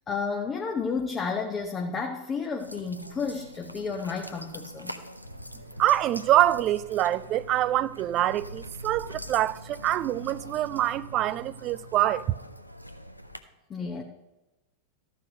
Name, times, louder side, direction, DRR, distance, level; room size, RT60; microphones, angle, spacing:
voice 1, 0.1-5.0 13.7-14.0, left 5 dB, 25° left, 0.9 m, -31 dB
sound 1, 2.6-13.4, equal, 90° right, 0.6 m, -44 dB
voice 2, 5.8-12.3, right 13 dB, 35° right, 0.4 m, -25 dB
13.5 x 5.2 x 6.5 m
figure-of-eight pair, 90°, 0 cm